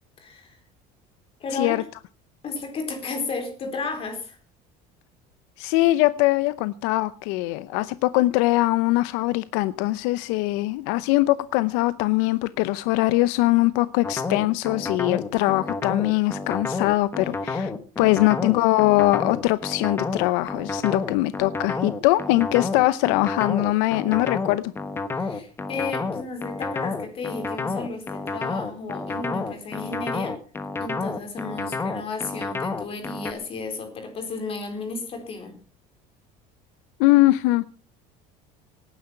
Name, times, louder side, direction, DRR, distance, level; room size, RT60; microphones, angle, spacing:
voice 1, 0.2-0.6 1.4-1.9 2.4-4.4 17.2-17.3 25.2-30.4 30.8-35.6, left 3 dB, 30° left, 6 dB, 4.1 m, -33 dB
voice 2, 1.5-1.8 5.6-17.7 18.0-24.7 37.0-37.6, left 18 dB, 90° left, 16 dB, 0.8 m, -22 dB
sound 1, 14.0-33.3, left 3 dB, 15° left, 1.2 m, -30 dB
18.0 x 10.0 x 5.8 m, 0.38 s
cardioid pair, 175°, 18 cm